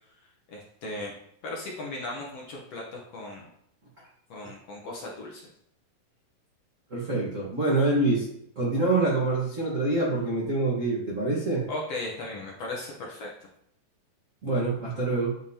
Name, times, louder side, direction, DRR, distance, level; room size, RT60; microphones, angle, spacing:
voice 1, 0.5-3.5 4.3-5.5 11.7-13.3, left 2 dB, 65° left, -3 dB, 1.6 m, -37 dB
voice 2, 6.9-8.3 8.5-11.6 14.4-15.4, right 2 dB, 65° right, -6 dB, 0.7 m, -26 dB
9.1 x 5.2 x 2.8 m, 0.73 s
omnidirectional pair, 4.0 m